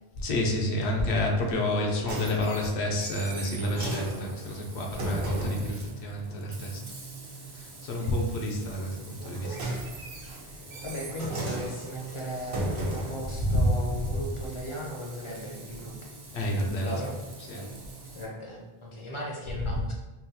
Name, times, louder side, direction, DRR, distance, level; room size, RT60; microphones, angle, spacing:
voice 1, 0.2-6.8 7.5-9.6 13.4-13.6 14.0-14.1 16.3-16.9 17.5-17.7 19.6-20.0, left 1 dB, 85° left, 0 dB, 0.9 m, -29 dB
sound 1, 1.7-5.7 9.1-13.3 14.0-14.1, right 1 dB, 85° right, 1.0 m, -35 dB
Frying (food), 3.3-18.3, right 3 dB, 45° right, 0.3 m, -45 dB
voice 2, 10.4-15.9 16.8-17.1 18.1-20.0, equal, 40° left, -2 dB, 0.5 m, -37 dB
3.9 x 2.2 x 2.7 m, 1.1 s
omnidirectional pair, 1.1 m